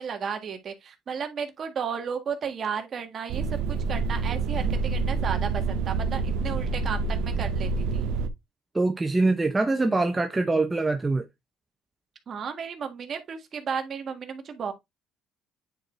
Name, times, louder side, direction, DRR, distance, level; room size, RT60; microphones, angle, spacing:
voice 1, 0.0-8.1 12.3-14.7, right 6 dB, 45° right, 1.6 m, -33 dB
sound 1, 3.3-8.3, right 4 dB, 80° right, 0.6 m, -27 dB
voice 2, 8.7-11.2, right 3 dB, 15° right, 0.7 m, -24 dB
9.2 x 4.7 x 2.6 m
cardioid pair, 110°, 0 cm